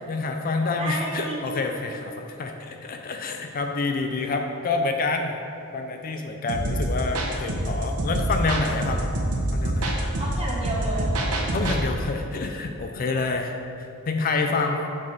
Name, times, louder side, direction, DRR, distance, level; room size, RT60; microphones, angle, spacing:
voice 1, 0.1-5.3 5.7-9.0 9.5-9.9 11.5-13.5 14.1-14.8, left 3 dB, 40° left, 4 dB, 0.4 m, -27 dB
voice 2, 0.8-1.6 10.1-11.3 13.1-13.3 14.4-14.8, right 2 dB, 30° right, -5 dB, 1.6 m, -32 dB
sound 1, 6.5-11.8, right 1 dB, 70° right, 1.0 m, -26 dB
8.6 x 4.3 x 4.9 m, 2.8 s
head